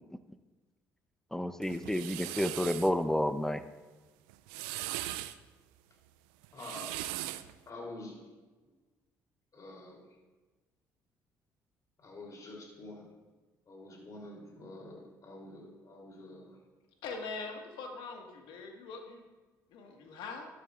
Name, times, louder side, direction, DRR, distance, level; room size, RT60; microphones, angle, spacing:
voice 1, 1.3-3.6, left 1 dB, 5° left, 11 dB, 0.7 m, -30 dB
sound 1, 1.6-2.9 4.3-5.4 6.4-7.5, right 15 dB, 80° right, 0.4 m, -39 dB
voice 2, 6.5-7.0 7.6-8.2 9.5-10.0 12.0-13.1 13.7-16.6, left 2 dB, 45° left, -1 dB, 3.3 m, -47 dB
voice 3, 17.0-19.2 19.7-20.5, left 4 dB, 70° left, 2 dB, 1.7 m, -42 dB
12.5 x 11.5 x 2.5 m, 1.3 s
hypercardioid pair, 60°, 8 cm